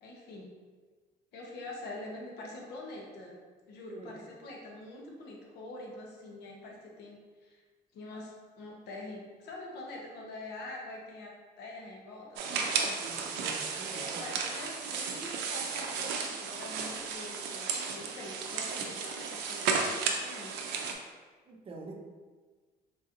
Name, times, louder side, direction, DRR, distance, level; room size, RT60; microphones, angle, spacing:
voice 1, 0.0-0.5 1.3-3.4 3.6-7.6 7.9-13.0 13.9-20.5, left 2 dB, 75° left, -1 dB, 0.8 m, -45 dB
sound 1, 12.4-20.9, right 5 dB, 85° right, 0.5 m, -34 dB
voice 2, 13.0-14.2 21.5-22.0, right 3 dB, 35° right, 1 dB, 0.6 m, -46 dB
3.8 x 2.7 x 2.5 m, 1.4 s
cardioid pair, 110°, 17 cm